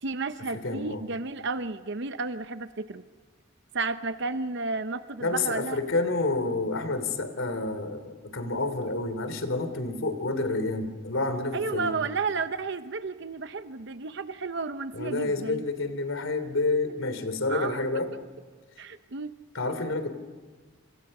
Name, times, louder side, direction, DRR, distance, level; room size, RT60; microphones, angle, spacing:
voice 1, 0.0-3.0 3.7-5.8 11.5-15.6 17.5-17.8 18.8-19.3, right 4 dB, 60° right, 10 dB, 0.8 m, -32 dB
voice 2, 0.5-1.0 5.2-12.0 14.9-18.1 19.5-20.1, left 3 dB, 80° left, 10 dB, 3.2 m, -29 dB
28.0 x 27.0 x 5.5 m, 1.5 s
head